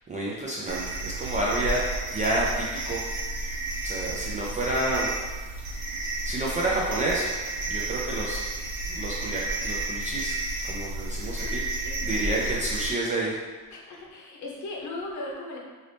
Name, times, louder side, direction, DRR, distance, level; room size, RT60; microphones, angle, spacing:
voice 1, 0.1-1.8 2.1-3.0 3.8-5.1 6.2-7.3 7.7-8.4 8.9-13.4, right 1 dB, 20° right, -5 dB, 0.3 m, -29 dB
sound 1, 0.7-12.9, right 2 dB, 65° right, 0.8 m, -32 dB
voice 2, 11.4-12.3 13.7-15.6, left 2 dB, 50° left, -2 dB, 0.8 m, -38 dB
4.0 x 2.7 x 3.2 m, 1.4 s
cardioid pair, 170°, 37 cm